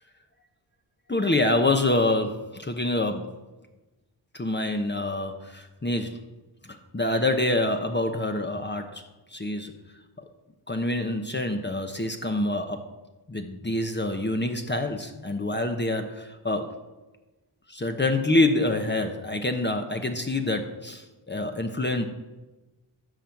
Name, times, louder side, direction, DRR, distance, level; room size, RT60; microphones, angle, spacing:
voice 1, 1.1-3.3 4.3-6.2 6.6-9.1 9.3-9.8 10.7-12.8 13.3-16.8 17.7-22.1, left 2 dB, 20° left, 5 dB, 1.0 m, -26 dB
12.5 x 4.4 x 7.7 m, 1.1 s
cardioid pair, 70°, 49 cm